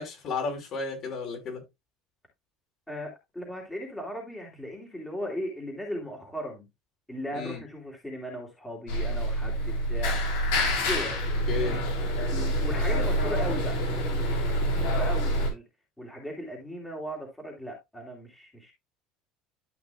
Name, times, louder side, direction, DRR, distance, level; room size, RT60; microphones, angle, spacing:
voice 1, 0.0-1.6 7.3-7.6 11.5-11.8, left 4 dB, 45° left, 5.0 m, -33 dB
voice 2, 2.9-6.7 7.1-10.2 10.9-11.2 12.3-15.6 16.0-18.7, equal, 5° left, 3.1 m, -37 dB
sound 1, 8.9-15.5, equal, 85° left, 3.8 m, -27 dB
12.5 x 5.9 x 2.3 m
cardioid pair, 135°, 0 cm